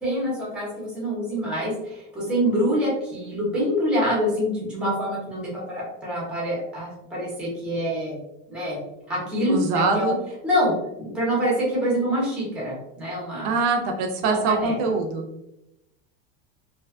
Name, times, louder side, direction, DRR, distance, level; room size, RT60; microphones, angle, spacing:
voice 1, 0.0-8.2 8.5-8.8 9.1-10.1 10.4-13.5 14.3-14.7, equal, 5° right, -5 dB, 0.6 m, -26 dB
voice 2, 9.5-10.2 13.4-15.3, right 3 dB, 40° right, 3 dB, 0.4 m, -23 dB
2.6 x 2.2 x 2.4 m, 0.87 s
supercardioid pair, 175°, 31 cm